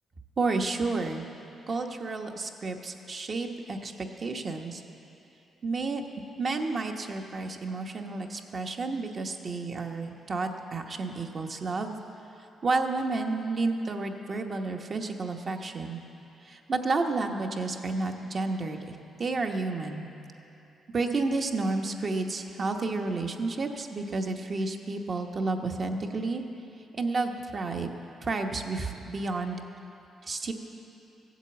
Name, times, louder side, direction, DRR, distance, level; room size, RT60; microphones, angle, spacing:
voice 1, 0.4-1.3 1.7-4.8 5.6-6.0 6.4-11.9 12.6-16.0 16.4-20.1 20.9-26.4 26.9-27.9 28.2-29.6 30.2-30.5, right 3 dB, 35° right, 4 dB, 1.0 m, -31 dB
16.0 x 8.1 x 8.1 m, 2.9 s
cardioid pair, 125°, 0 cm